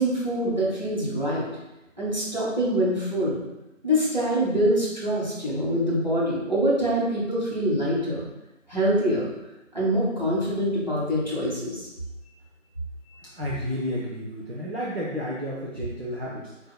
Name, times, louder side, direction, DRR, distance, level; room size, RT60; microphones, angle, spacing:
voice 1, 0.0-1.5 2.0-3.4 3.8-8.2 8.7-9.3 9.7-11.9 13.1-13.2, equal, 35° right, -7 dB, 1.4 m, -24 dB
voice 2, 13.4-16.7, equal, 50° right, -4 dB, 0.7 m, -32 dB
7.9 x 2.8 x 2.2 m, 0.99 s
figure-of-eight pair, 170°, 40 cm